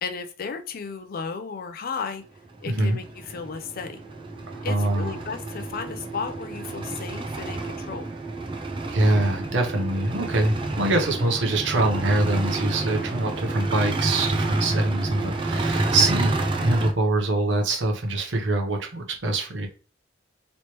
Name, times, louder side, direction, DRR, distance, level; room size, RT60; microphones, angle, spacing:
voice 1, 0.0-2.2 2.6-4.0 4.6-8.1, left 5 dB, 50° left, 0.5 m, -34 dB
sound 1, 2.4-16.9, right 2 dB, 25° right, 0.4 m, -29 dB
voice 2, 2.7-3.0 4.5-5.2 8.9-19.7, right 2 dB, 75° right, 0.8 m, -24 dB
3.1 x 3.0 x 2.9 m
head